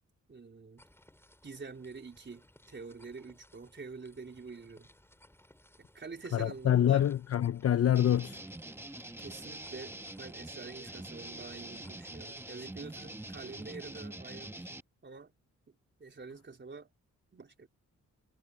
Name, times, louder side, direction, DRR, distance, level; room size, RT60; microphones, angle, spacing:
voice 1, 0.3-0.8 1.4-4.9 5.8-7.1 9.2-14.7 15.0-15.3 16.0-16.9 17.3-17.7, right 4 dB, 35° right, 4.1 m, -47 dB
sound 1, 0.8-14.0, left 1 dB, 10° left, 7.3 m, -63 dB
voice 2, 6.3-8.4, left 10 dB, 50° left, 0.6 m, -26 dB
sound 2, 8.0-14.8, right 1 dB, 10° right, 1.1 m, -45 dB
wide cardioid pair, 115°, 31 cm